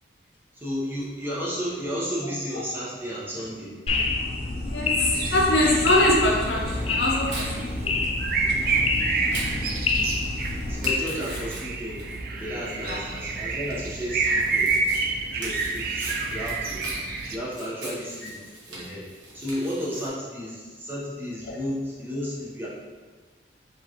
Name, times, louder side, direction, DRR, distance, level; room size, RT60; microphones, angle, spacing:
voice 1, 0.5-3.8 10.7-12.1 12.4-14.7 15.4-16.9 17.3-19.1 19.3-22.7, equal, 10° right, -7 dB, 0.8 m, -33 dB
sound 1, 3.9-11.0, left 3 dB, 35° left, 0.3 m, -27 dB
voice 2, 4.6-8.0 8.4-8.5 12.8-13.0, left 1 dB, 65° left, -2 dB, 0.8 m, -23 dB
sound 2, 5.1-17.4, right 4 dB, 55° right, 0.4 m, -29 dB
Tearing, 6.6-20.1, right 1 dB, 85° right, 1.2 m, -41 dB
4.8 x 3.0 x 2.8 m, 1.5 s
head